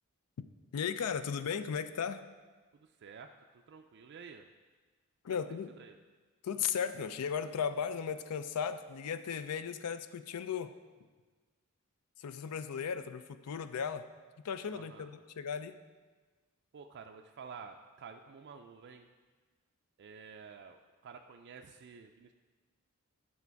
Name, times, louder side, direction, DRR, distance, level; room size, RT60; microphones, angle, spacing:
voice 1, 0.7-2.2 5.2-5.7 6.4-10.7 12.2-14.1 14.4-15.8, left 7 dB, 85° left, 12 dB, 0.4 m, -36 dB
voice 2, 2.8-4.5 5.5-6.0 14.7-15.1 16.7-19.1 20.0-22.3, right 5 dB, 50° right, 4 dB, 0.3 m, -51 dB
8.3 x 5.7 x 4.6 m, 1.4 s
head